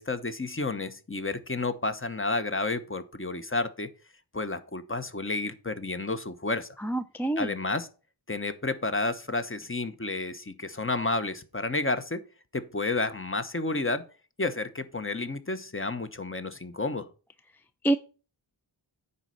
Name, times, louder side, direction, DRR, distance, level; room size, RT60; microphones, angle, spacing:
voice 1, 0.0-3.9 4.3-6.7 7.4-7.9 8.3-12.2 12.5-14.0 14.4-17.1, left 3 dB, 25° left, 0.9 m, -31 dB
voice 2, 6.8-7.5 17.8-18.0, right 2 dB, 5° left, 0.4 m, -26 dB
9.6 x 4.2 x 6.3 m
wide cardioid pair, 60°, 48 cm